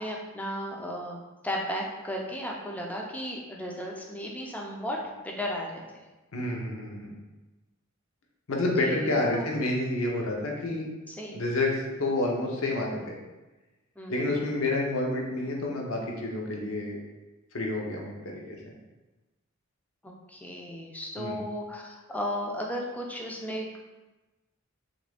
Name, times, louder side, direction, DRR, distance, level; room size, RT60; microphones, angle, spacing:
voice 1, 0.0-6.0 8.8-9.5 11.1-11.4 14.0-14.3 20.0-23.8, equal, 5° left, -1 dB, 0.4 m, -35 dB
voice 2, 6.3-7.2 8.5-10.9 11.3-13.1 14.1-17.0 17.5-18.7 21.2-21.4, left 2 dB, 70° left, -1 dB, 0.7 m, -29 dB
3.1 x 2.5 x 3.3 m, 1.1 s
head